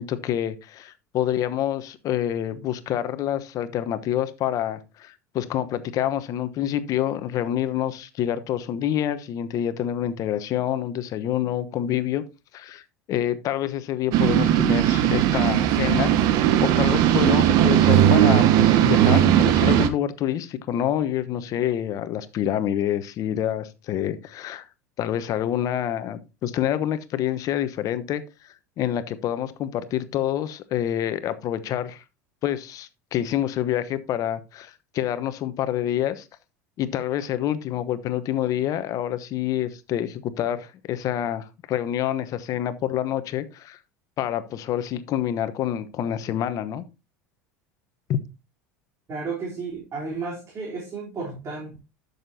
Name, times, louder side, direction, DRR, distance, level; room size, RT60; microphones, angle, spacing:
voice 1, 0.0-12.2 12.5-12.8 13.1-24.7 25.0-32.0 32.4-36.2 36.8-43.8 44.2-46.8 48.1-48.2, left 11 dB, 50° left, 1.0 m, -27 dB
sound 1, 14.1-19.9, right 11 dB, 60° right, 1.0 m, -18 dB
voice 2, 49.1-51.8, right 4 dB, 40° right, 3.5 m, -33 dB
12.0 x 6.7 x 2.8 m
hypercardioid pair, 80°, 8 cm